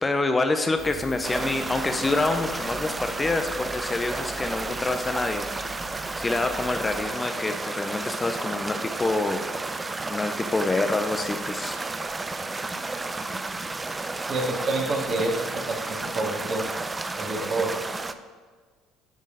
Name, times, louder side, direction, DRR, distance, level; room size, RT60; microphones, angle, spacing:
voice 1, 0.0-5.4 6.2-9.4 10.1-11.8, left 2 dB, 20° left, 6 dB, 0.6 m, -26 dB
sound 1, 0.8-7.0, right 1 dB, 5° right, 1.1 m, -42 dB
sound 2, 1.2-18.1, right 3 dB, 20° right, 0.4 m, -32 dB
voice 2, 14.2-16.7 17.2-17.8, right 2 dB, 45° right, 0 dB, 1.7 m, -28 dB
9.4 x 3.7 x 4.9 m, 1.5 s
hypercardioid pair, 70°, 0 cm